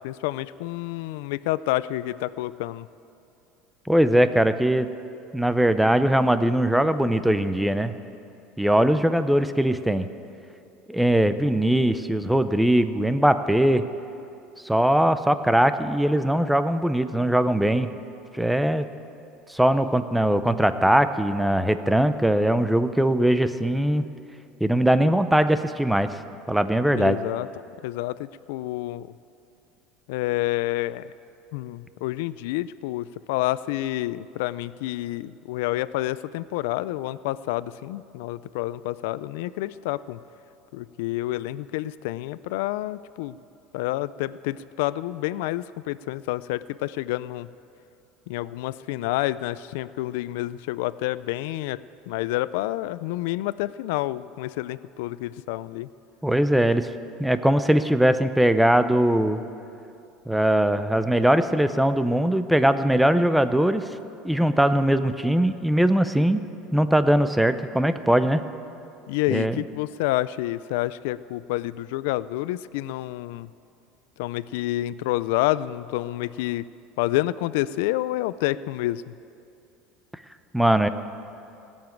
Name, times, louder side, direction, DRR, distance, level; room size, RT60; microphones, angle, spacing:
voice 1, 0.0-2.9 26.9-27.5 27.8-29.1 30.1-31.1 31.5-40.2 40.7-43.4 43.7-47.5 48.3-51.8 52.1-55.9 69.1-73.5 74.2-76.7 77.0-79.0, left 16 dB, 80° left, 16 dB, 0.3 m, -28 dB
voice 2, 3.9-4.9 5.3-7.9 8.6-10.1 10.9-13.8 14.6-17.9 18.3-18.9 19.5-24.0 24.6-26.2 26.5-27.2 56.2-56.9 57.2-59.4 60.3-63.8 64.2-66.4 66.7-68.4 69.3-69.6 80.5-80.9, right 1 dB, ahead, 11 dB, 0.4 m, -21 dB
17.5 x 7.2 x 9.1 m, 2.7 s
cardioid pair, 170°, 0 cm